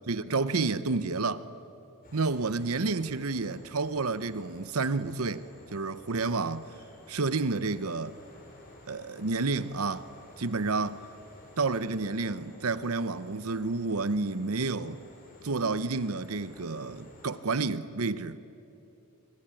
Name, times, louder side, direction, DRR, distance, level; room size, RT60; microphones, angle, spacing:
voice 1, 0.1-1.5 2.1-5.4 5.7-6.7 7.1-8.2 8.9-10.1 10.4-11.0 11.6-15.0 15.4-18.4, right 3 dB, 75° right, 0.9 m, -30 dB
sound 1, 2.0-17.4, left 1 dB, 40° left, 5.4 m, -54 dB
26.0 x 24.5 x 9.0 m
head